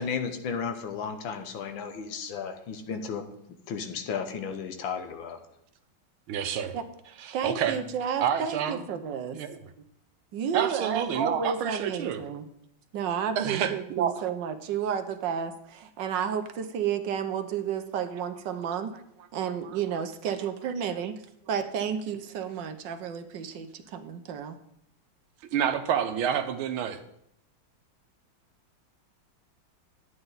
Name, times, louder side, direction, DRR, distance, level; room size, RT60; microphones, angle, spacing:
voice 1, 0.0-3.2 3.7-5.4, left 6 dB, 75° left, 7 dB, 1.7 m, -34 dB
voice 2, 6.3-6.7 7.2-7.8 8.2-8.8 9.3-9.6 10.5-12.2 13.4-14.3 25.5-27.0, right 8 dB, 90° right, 9 dB, 1.7 m, -28 dB
voice 3, 7.3-9.4 10.3-12.5 12.9-18.9 19.3-21.1 21.5-24.6, right 7 dB, 70° right, 9 dB, 1.3 m, -31 dB
11.0 x 8.9 x 4.0 m, 0.74 s
omnidirectional pair, 2.2 m